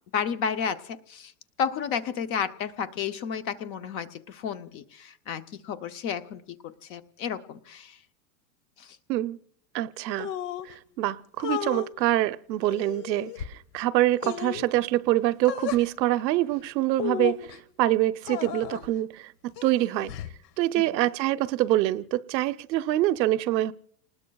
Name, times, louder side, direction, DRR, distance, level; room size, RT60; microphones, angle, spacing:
voice 1, 0.1-1.3 1.6-8.0 8.8-9.0 21.0-21.1, left 7 dB, 25° left, 0.6 m, -32 dB
voice 2, 9.1-9.4 9.7-10.3 10.6-20.1 20.6-23.7, right 15 dB, 90° right, 0.8 m, -25 dB
sound 1, 10.2-10.7 11.4-11.9 12.6-13.5 14.2-14.7 15.5-15.8 16.9-17.6 18.2-18.9 19.6-20.3, left 10 dB, 75° left, 1.4 m, -33 dB
30.0 x 20.0 x 2.3 m
supercardioid pair, 155°, 49 cm